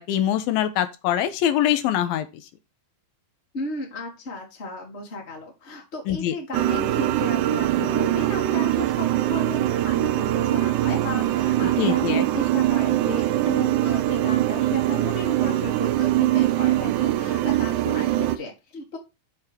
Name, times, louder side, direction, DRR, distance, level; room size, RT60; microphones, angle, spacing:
voice 1, 0.0-2.3 6.1-6.3 11.6-12.2, left 11 dB, 85° left, 2.5 m, -23 dB
voice 2, 3.5-19.0, left 2 dB, 35° left, 1.0 m, -34 dB
sound 1, 6.5-18.4, right 14 dB, 90° right, 1.7 m, -22 dB
6.8 x 4.8 x 4.3 m
omnidirectional pair, 4.2 m